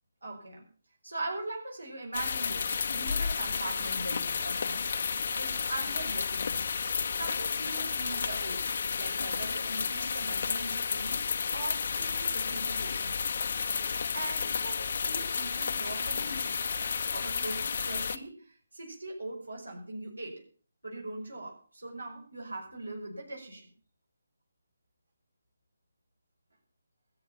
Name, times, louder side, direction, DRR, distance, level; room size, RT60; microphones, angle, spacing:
voice 1, 0.2-0.7 1.0-4.8 5.3-6.7 7.1-8.7 9.0-11.2 11.5-13.2 14.1-16.5 17.1-20.4 20.8-23.7, right 2 dB, 70° right, 0 dB, 5.3 m, -41 dB
sound 1, 2.1-18.2, left 5 dB, 45° left, 0.9 m, -32 dB
20.5 x 8.5 x 5.7 m, 0.40 s
figure-of-eight pair, 145°, 0 cm